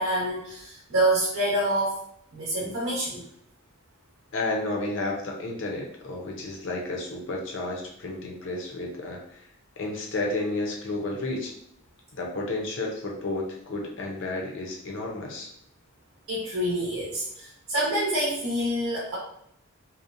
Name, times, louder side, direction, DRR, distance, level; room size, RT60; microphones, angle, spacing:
voice 1, 0.0-2.0 2.3-3.2 16.3-19.2, right 1 dB, 90° right, -6 dB, 0.8 m, -27 dB
voice 2, 4.3-9.4 9.8-11.5 12.1-15.5, left 2 dB, 60° left, 0 dB, 0.6 m, -31 dB
2.7 x 2.1 x 2.5 m, 0.71 s
head